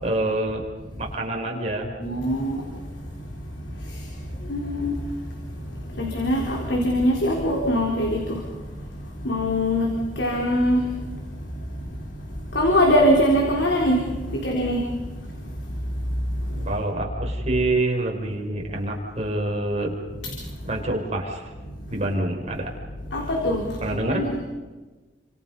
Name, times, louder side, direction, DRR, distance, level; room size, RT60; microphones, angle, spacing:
voice 1, 0.0-0.6 1.0-1.9 16.6-19.9 20.6-21.5 21.9-22.7 23.8-24.2, right 2 dB, 40° right, 0 dB, 5.4 m, -26 dB
voice 2, 2.0-2.9 3.5-8.8 9.1-12.2 12.5-16.7 20.2-20.3 23.1-23.8 24.1-24.4, equal, 85° left, 0 dB, 4.0 m, -24 dB
30.0 x 26.0 x 5.5 m, 1.3 s
head